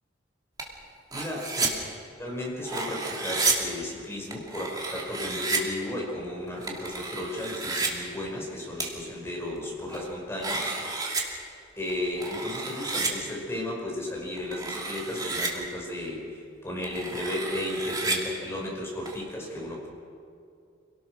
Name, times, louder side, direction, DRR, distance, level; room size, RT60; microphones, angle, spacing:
sound 1, 0.6-0.7 1.1-1.7 2.4-3.5 4.3-5.6 6.6-7.9 8.8-8.9 9.6-10.1 10.4-11.2 11.9-13.1 14.4-15.5 16.8-18.2 19.1-19.2, right 3 dB, 20° right, 2.7 m, -31 dB
voice 1, 1.1-1.7 2.2-10.8 11.8-19.9, left 1 dB, 15° left, -3 dB, 5.6 m, -34 dB
26.5 x 18.0 x 6.3 m, 2.3 s
head